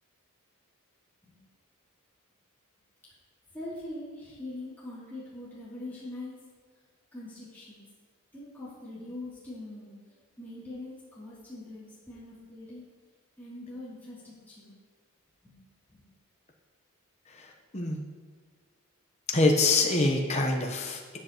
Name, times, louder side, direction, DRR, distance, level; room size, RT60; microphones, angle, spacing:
voice 1, 3.5-6.3 7.1-7.8 8.3-12.8 13.4-14.7 15.4-15.6 15.9-16.0, left 1 dB, 10° left, -11 dB, 2.9 m, -42 dB
voice 2, 17.3-18.0 19.3-21.2, left 2 dB, 30° left, 1 dB, 0.9 m, -25 dB
13.0 x 7.8 x 3.0 m, 1.5 s
head